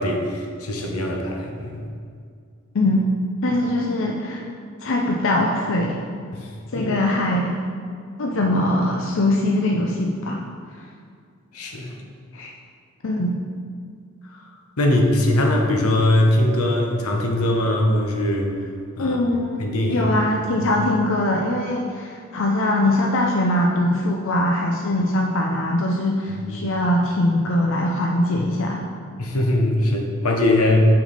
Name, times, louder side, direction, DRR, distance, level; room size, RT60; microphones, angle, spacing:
voice 1, 0.0-1.8 6.3-6.5 6.7-6.9 11.5-11.9 14.3-14.4 14.8-18.5 19.0-19.2 19.6-20.1 20.6-20.7 26.4-26.7 29.2-30.8, left 1 dB, 90° left, 1 dB, 1.0 m, -21 dB
voice 2, 2.7-3.1 3.4-4.4 4.8-6.0 6.7-7.6 8.2-10.4 12.3-12.5 13.0-13.4 19.0-19.6 19.9-28.8, left 1 dB, 60° left, 0 dB, 0.6 m, -22 dB
6.9 x 6.0 x 4.1 m, 2.2 s
head